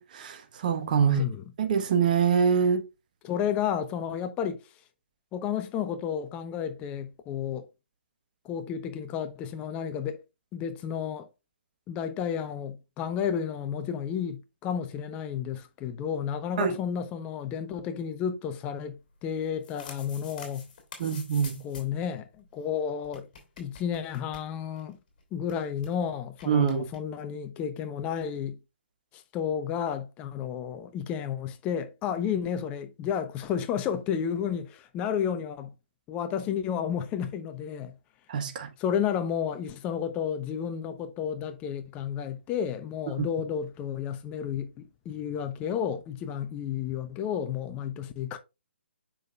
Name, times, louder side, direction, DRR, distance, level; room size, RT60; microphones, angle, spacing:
voice 1, 0.0-1.2 1.6-2.8 16.6-16.8 21.0-21.6 26.5-26.9 38.3-38.7 43.2-43.3, right 7 dB, 45° right, 1.2 m, -25 dB
voice 2, 1.0-1.4 3.2-4.6 5.3-7.7 8.4-10.2 10.5-11.3 11.9-20.7 21.6-23.3 23.6-25.0 25.3-28.6 29.1-35.7 36.1-38.0 38.8-48.4, left 8 dB, 20° left, 0.7 m, -32 dB
sound 1, 19.4-22.0 22.3-22.4 22.6-22.7 23.0-24.9 25.2-25.3 25.5-25.9 26.4-27.0, left 5 dB, 45° left, 3.0 m, -47 dB
7.6 x 5.7 x 2.4 m
figure-of-eight pair, 135°, 6 cm